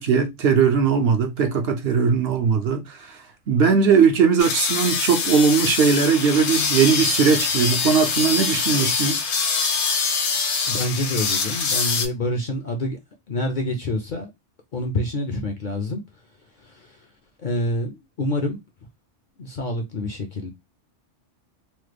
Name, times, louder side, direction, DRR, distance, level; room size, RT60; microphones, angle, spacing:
voice 1, 0.0-3.2 3.5-9.2, right 6 dB, 65° right, 0.7 m, -19 dB
sound 1, 4.4-12.1, left 5 dB, 70° left, 0.9 m, -24 dB
voice 2, 10.7-13.0 13.3-14.3 14.7-16.0 16.6-17.0 17.4-18.6 19.4-20.5, left 1 dB, 55° left, 0.6 m, -27 dB
3.0 x 2.1 x 3.2 m
omnidirectional pair, 1.2 m